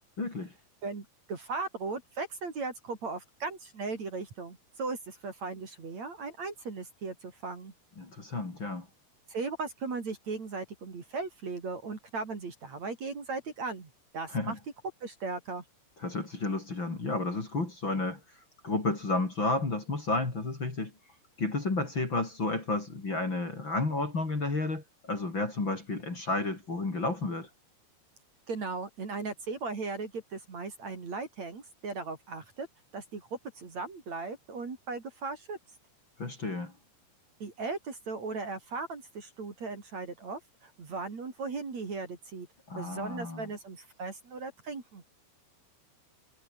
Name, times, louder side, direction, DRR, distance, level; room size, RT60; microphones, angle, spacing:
voice 1, 0.2-0.5 8.0-8.9 14.3-14.6 16.0-18.2 18.6-20.9 21.4-27.5 36.2-36.7 42.7-43.5, left 2 dB, 30° left, 4.5 m, -31 dB
voice 2, 0.8-7.7 9.3-14.5 15.0-15.6 28.5-32.7 32.9-35.6 37.4-42.5 42.8-45.0, right 4 dB, 40° right, 4.7 m, -37 dB
omnidirectional pair, 5.0 m